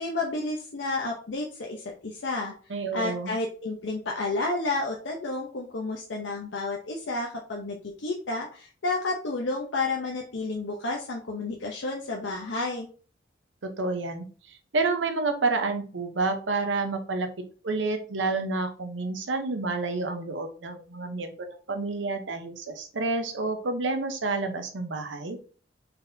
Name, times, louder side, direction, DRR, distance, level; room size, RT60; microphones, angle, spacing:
voice 1, 0.0-2.5 2.9-12.9, left 3 dB, 85° left, 0 dB, 0.7 m, -31 dB
voice 2, 2.7-3.3 13.6-17.3 17.6-25.4, right 3 dB, 90° right, 7 dB, 0.7 m, -29 dB
4.1 x 4.1 x 2.6 m, 0.39 s
head